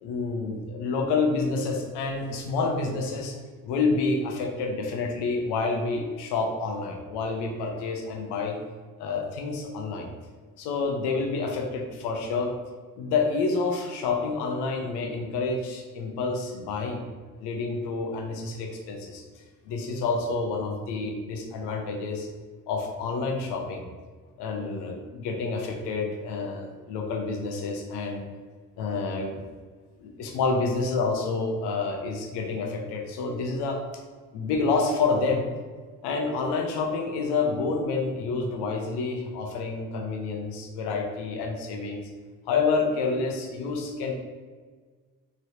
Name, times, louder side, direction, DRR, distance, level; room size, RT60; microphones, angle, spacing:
voice 1, 0.0-3.4 3.6-8.6 9.0-10.1 10.6-12.5 13.0-17.1 17.4-19.2 19.7-22.3 22.7-23.8 24.4-28.2 28.8-29.4 30.0-33.8 34.3-35.5 36.0-42.0 42.5-44.1, left 4 dB, 80° left, 3 dB, 0.7 m, -28 dB
3.0 x 3.0 x 2.7 m, 1.5 s
supercardioid pair, 60°, 40 cm